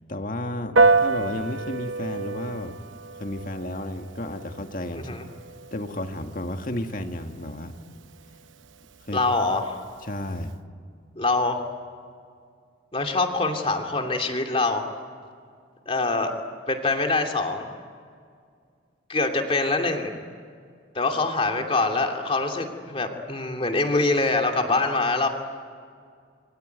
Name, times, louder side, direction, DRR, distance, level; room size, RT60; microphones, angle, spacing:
voice 1, 0.1-2.8 3.2-5.2 5.7-7.8 9.0-9.2 10.0-10.6, left 1 dB, 45° left, 5 dB, 2.0 m, -32 dB
Piano, 0.8-10.5, right 3 dB, 85° right, 0.9 m, -28 dB
voice 2, 9.1-9.8 11.2-11.6 12.9-14.8 15.9-16.3 16.7-17.7 19.1-20.1 20.9-25.3, left 3 dB, 30° left, 4 dB, 2.7 m, -24 dB
27.5 x 23.0 x 9.4 m, 2.2 s
head